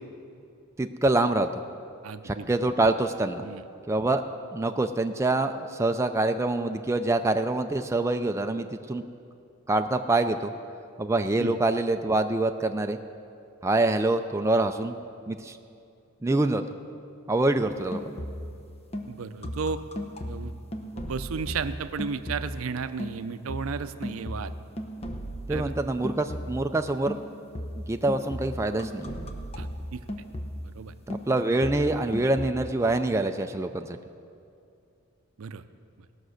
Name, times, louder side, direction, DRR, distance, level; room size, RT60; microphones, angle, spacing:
voice 1, 0.8-1.5 2.2-3.4 3.9-4.2 4.5-9.0 9.7-10.5 11.0-13.0 13.6-14.9 15.3-15.6 16.2-16.6 17.3-18.2 25.5-27.2 27.9-29.1 31.1-34.0, right 2 dB, 15° right, 6 dB, 0.4 m, -25 dB
voice 2, 2.0-2.5 3.4-3.6 11.4-11.6 19.1-19.8 20.2-20.5 20.8-24.5 25.5-25.7 29.6-30.0 30.7-30.9 35.4-35.6, right 5 dB, 75° right, 12 dB, 0.5 m, -34 dB
sound 1, 17.7-18.6 18.9-22.7 23.0-26.7 27.1-30.8 31.1-32.5, equal, 30° left, 0.9 m, -36 dB
18.5 x 6.1 x 6.4 m, 2.5 s
head